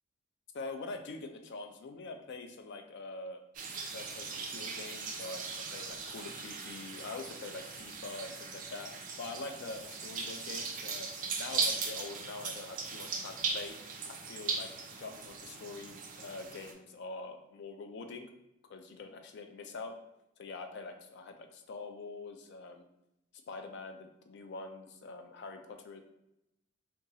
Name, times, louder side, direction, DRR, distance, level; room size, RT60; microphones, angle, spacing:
voice 1, 0.5-3.4 3.9-11.1 11.4-13.8 14.0-14.7 15.0-18.3 18.7-20.0 20.4-22.9 23.5-26.0, left 3 dB, 50° left, 6 dB, 0.3 m, -44 dB
sound 1, 3.5-16.7, right 4 dB, 35° right, 0.3 m, -39 dB
2.8 x 2.3 x 2.7 m, 0.85 s
head